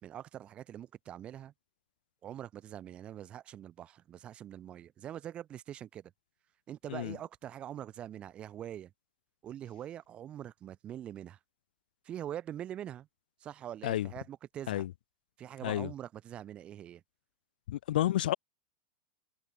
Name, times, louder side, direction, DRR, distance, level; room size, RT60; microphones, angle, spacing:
voice 1, 0.0-1.5 2.2-6.1 6.7-8.9 9.4-11.4 12.0-13.1 13.4-14.9 15.4-17.0, right 11 dB, 20° right, 3.9 m, -44 dB
voice 2, 17.7-18.3, left 13 dB, 75° left, 3.6 m, -30 dB
supercardioid pair, 165°, 5 cm